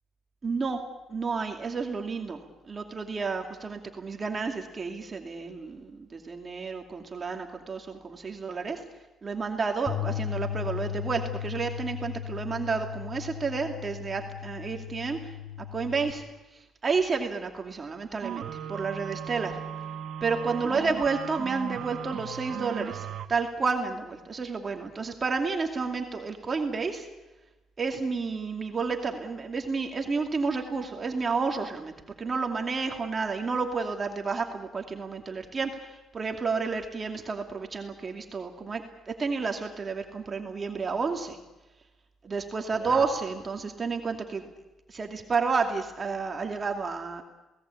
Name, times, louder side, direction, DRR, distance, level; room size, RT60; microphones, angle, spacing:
voice 1, 0.4-0.8 1.1-2.4 2.6-8.8 9.2-15.3 15.7-16.2 16.5-19.6 20.2-27.1 27.8-31.9 32.2-41.4 42.2-44.5 44.9-47.2, right 4 dB, 35° right, 3 dB, 2.5 m, -31 dB
Bass guitar, 9.9-16.1, left 10 dB, 40° left, 3.7 m, -36 dB
sound 1, 18.2-23.3, right 9 dB, 70° right, 1.5 m, -37 dB
27.0 x 18.5 x 8.5 m, 1.1 s
cardioid pair, 90°, 0 cm